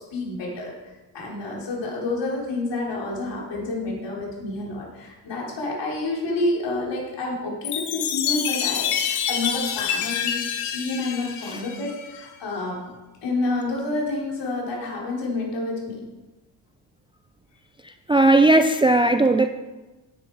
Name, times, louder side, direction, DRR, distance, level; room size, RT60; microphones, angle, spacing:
voice 1, 0.1-0.7 1.1-12.8 13.2-16.0, left 2 dB, 60° left, -3 dB, 4.1 m, -29 dB
Chime, 7.6-12.3, left 9 dB, 85° left, 1.3 m, -27 dB
voice 2, 17.8-19.5, right 2 dB, 10° right, 8 dB, 0.4 m, -18 dB
10.0 x 9.0 x 4.8 m, 1.1 s
cardioid pair, 90°, 48 cm